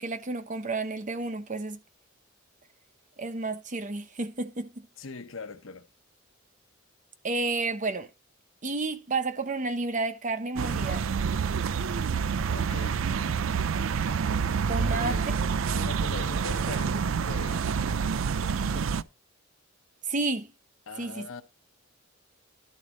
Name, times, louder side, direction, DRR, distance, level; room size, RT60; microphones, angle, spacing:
voice 1, 0.0-1.8 3.2-4.7 7.2-8.1 8.6-11.1 14.7-15.1 20.1-20.5 21.0-21.3, right 3 dB, 40° right, 0.9 m, -31 dB
voice 2, 5.0-5.9 12.4-13.1 14.9-15.3 15.7-18.1 18.4-19.1 20.9-21.4, left 3 dB, 75° left, 1.1 m, -42 dB
sound 1, 10.6-19.0, right 6 dB, 80° right, 0.4 m, -28 dB
11.5 x 4.1 x 6.3 m
head